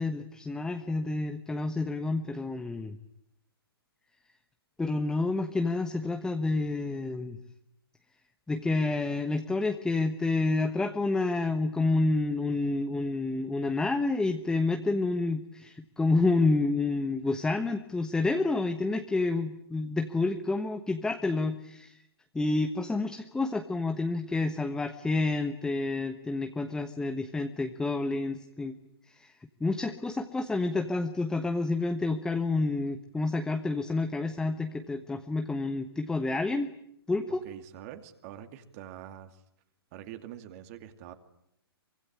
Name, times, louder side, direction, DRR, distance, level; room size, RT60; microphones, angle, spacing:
voice 1, 0.0-3.0 4.8-7.4 8.5-22.0 22.3-28.8 29.1-29.3 29.6-36.7 37.1-37.4, left 3 dB, 5° left, 6 dB, 1.2 m, -29 dB
voice 2, 37.3-39.4 39.9-41.1, right 11 dB, 35° right, 8 dB, 2.5 m, -45 dB
24.5 x 22.5 x 9.9 m, 0.77 s
hypercardioid pair, 130°, 13 cm